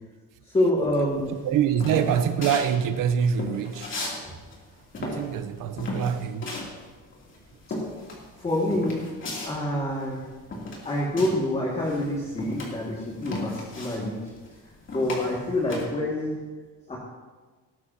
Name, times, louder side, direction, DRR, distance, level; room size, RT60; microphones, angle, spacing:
voice 1, 0.4-1.4 4.2-4.3 8.4-9.0 9.4-10.2 10.8-14.2 14.9-16.4 16.9-17.0, left 1 dB, 20° left, -4 dB, 2.2 m, -27 dB
sound 1, 1.2-4.2 4.5-11.5 11.8-15.9, left 2 dB, 40° left, 3.1 m, -35 dB
voice 2, 1.4-4.0 5.0-6.5, right 8 dB, 75° right, 10 dB, 1.0 m, -25 dB
19.0 x 12.5 x 2.9 m, 1.4 s
cardioid pair, 160°, 32 cm